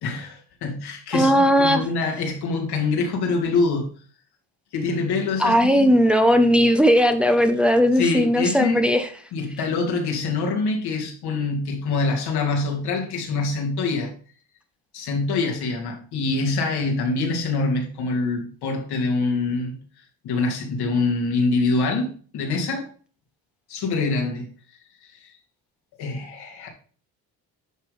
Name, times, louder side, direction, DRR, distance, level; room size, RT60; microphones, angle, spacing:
voice 1, 0.0-3.9 4.7-5.5 8.0-8.8 9.3-14.1 14.9-19.8 20.2-22.9 23.7-24.5 25.1-25.3 26.0-26.7, left 3 dB, 80° left, 2.6 m, -25 dB
voice 2, 1.1-1.8 5.4-9.1, equal, 5° right, 1.1 m, -17 dB
11.0 x 3.7 x 5.0 m
cardioid pair, 85°, 38 cm